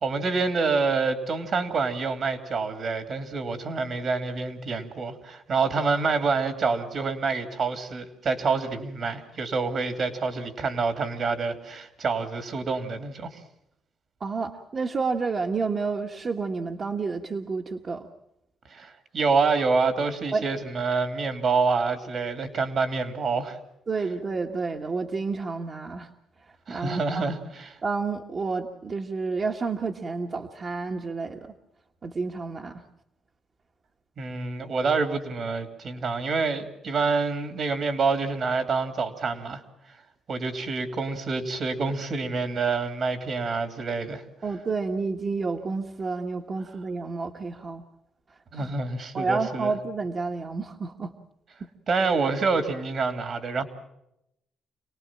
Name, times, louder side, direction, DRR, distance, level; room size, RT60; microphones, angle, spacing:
voice 1, 0.0-13.4 18.7-23.6 26.7-27.8 34.2-39.6 40.3-44.2 48.5-49.7 51.9-53.6, right 4 dB, 55° right, 8 dB, 2.7 m, -27 dB
voice 2, 14.2-18.1 20.3-20.4 23.9-26.1 26.4-27.3 27.8-31.5 32.0-32.8 44.4-47.8 48.5-48.7 49.1-51.1 51.6-51.7, right 4 dB, 40° right, 2 dB, 1.5 m, -30 dB
27.5 x 18.5 x 7.5 m, 0.82 s
cardioid pair, 90°, 0 cm